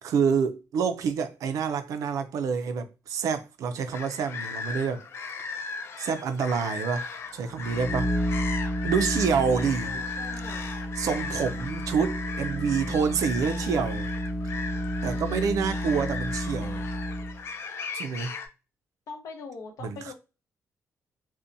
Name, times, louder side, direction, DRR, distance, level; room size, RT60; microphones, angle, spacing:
voice 1, 0.0-5.0 6.0-8.1 8.8-10.0 11.0-14.1 15.0-16.9 17.9-18.3 19.8-20.1, right 6 dB, 75° right, 0.3 m, -27 dB
sound 1, 3.9-18.5, left 5 dB, 50° left, 0.3 m, -37 dB
sound 2, 7.5-17.4, equal, 5° left, 0.9 m, -31 dB
voice 2, 9.8-10.7 19.1-20.1, left 4 dB, 80° left, 0.8 m, -42 dB
2.6 x 2.1 x 2.5 m
wide cardioid pair, 180°, 6 cm